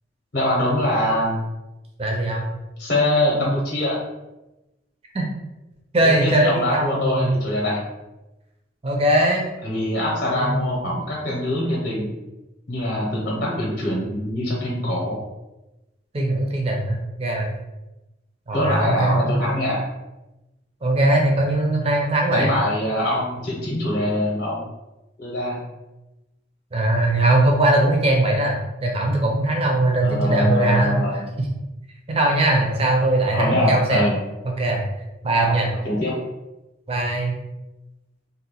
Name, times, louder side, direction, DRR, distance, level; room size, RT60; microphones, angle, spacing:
voice 1, 0.3-1.4 2.8-4.0 6.0-7.8 9.6-12.1 12.7-15.2 18.5-19.8 22.3-24.6 25.2-25.6 30.0-31.2 33.3-34.2 35.6-36.1, left 1 dB, 45° left, -4 dB, 0.8 m, -23 dB
voice 2, 2.0-2.5 5.1-5.2 5.9-7.3 8.8-9.5 10.2-10.7 16.1-17.5 18.5-19.3 20.8-22.5 26.7-31.0 31.4-31.5 32.1-34.0 34.6-34.8 35.2-35.7 36.9-37.4, right 1 dB, 30° right, 0 dB, 0.5 m, -20 dB
2.7 x 2.2 x 4.1 m, 1.0 s
head